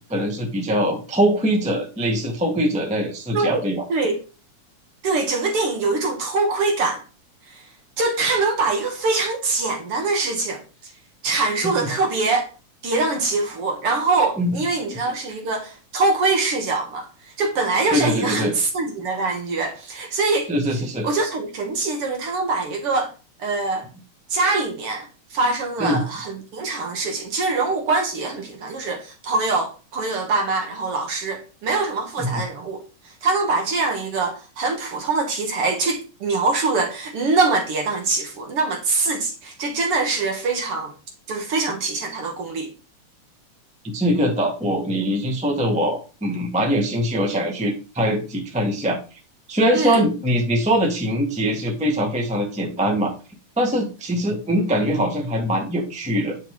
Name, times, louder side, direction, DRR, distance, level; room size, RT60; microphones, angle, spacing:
voice 1, 0.1-3.8 11.6-11.9 14.4-14.6 17.9-18.5 20.5-21.1 25.8-26.0 32.2-32.3 43.9-49.0 49.5-53.1 53.6-56.4, equal, 5° right, 0.9 m, -22 dB
voice 2, 3.9-4.2 5.0-7.0 7.5-7.6 8.0-10.6 11.2-12.5 12.8-17.1 17.4-20.5 21.0-23.1 23.4-23.9 24.3-32.8 33.2-40.9 41.3-42.7 49.7-50.0, right 3 dB, 55° right, 2.0 m, -23 dB
10.0 x 5.4 x 3.7 m
omnidirectional pair, 3.5 m